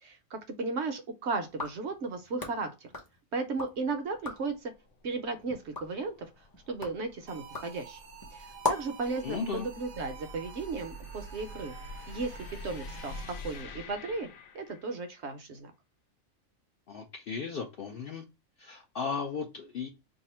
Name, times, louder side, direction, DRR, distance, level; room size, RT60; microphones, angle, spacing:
voice 1, 0.0-2.9 3.3-4.7 5.0-6.1 6.7-8.0 8.3-11.7 12.1-12.3 12.6-13.1 13.4-14.3 14.5-15.7, right 3 dB, 65° right, 0.8 m, -35 dB
sound 1, 1.5-3.8 4.1-4.6 5.1-9.1, left 2 dB, 20° left, 0.7 m, -39 dB
sound 2, 3.7-15.1, left 2 dB, 75° left, 1.0 m, -47 dB
sound 3, 7.3-13.5, right 7 dB, 85° right, 1.0 m, -50 dB
voice 2, 9.2-9.7 16.9-18.2 18.6-19.9, left 5 dB, 60° left, 0.6 m, -35 dB
2.7 x 2.5 x 4.2 m
omnidirectional pair, 1.4 m